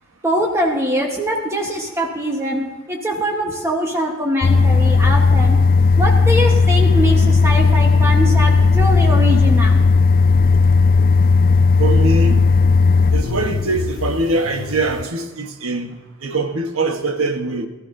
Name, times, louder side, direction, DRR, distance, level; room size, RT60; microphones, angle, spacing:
voice 1, 0.2-5.6 6.0-9.8, equal, 15° right, 1.2 m, -22 dB
sound 1, 4.4-15.1, left 4 dB, 45° left, 0.4 m, -15 dB
voice 2, 11.8-12.5 13.1-17.7, right 2 dB, 90° right, 1.1 m, -22 dB
19.0 x 13.5 x 2.7 m
head